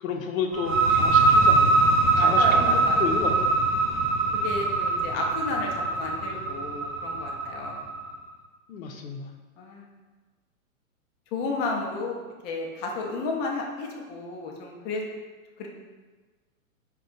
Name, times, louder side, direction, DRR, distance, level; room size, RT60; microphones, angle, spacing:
voice 1, 0.0-1.8 2.2-3.3 8.7-9.3, left 5 dB, 70° left, 4 dB, 0.7 m, -31 dB
sound 1, 0.5-8.0, right 3 dB, 25° right, 0.6 m, -22 dB
voice 2, 2.1-3.1 4.3-7.8 9.6-9.9 11.3-12.1 12.4-15.0 15.6-15.7, left 3 dB, 25° left, 0 dB, 0.5 m, -32 dB
4.0 x 2.4 x 3.8 m, 1.3 s
hypercardioid pair, 115°, 42 cm